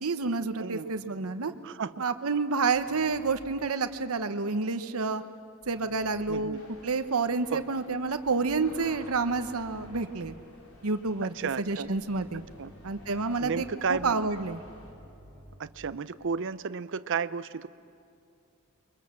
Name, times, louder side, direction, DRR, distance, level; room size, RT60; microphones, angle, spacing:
voice 1, 0.0-1.5 2.0-5.2 5.7-10.3 10.8-11.3 11.7-12.4 12.8-14.6, right 4 dB, 75° right, 9 dB, 1.0 m, -29 dB
voice 2, 0.6-0.9 1.6-1.9 6.3-6.6 7.5-7.6 11.4-11.9 12.6-12.7 13.4-14.2 15.6-17.7, right 5 dB, 60° right, 14 dB, 0.6 m, -32 dB
sound 1, 0.8-3.6 5.6-6.4 7.3-10.3 11.9-15.8, equal, 20° left, 6.8 m, -53 dB
sound 2, 6.5-14.9, left 1 dB, 85° left, 4.1 m, -53 dB
29.0 x 23.0 x 7.5 m, 2.5 s
head